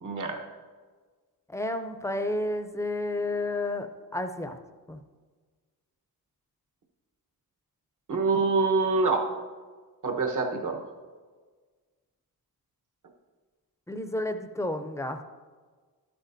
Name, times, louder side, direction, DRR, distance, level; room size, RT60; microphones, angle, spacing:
voice 1, 0.0-0.4 8.1-9.4 10.0-10.9, right 3 dB, 55° right, 3 dB, 1.2 m, -26 dB
voice 2, 1.5-3.9 4.1-4.6 4.9-5.0 13.9-15.2, left 2 dB, 10° left, 7 dB, 0.6 m, -31 dB
12.5 x 8.4 x 2.7 m, 1.5 s
wide cardioid pair, 110°, 37 cm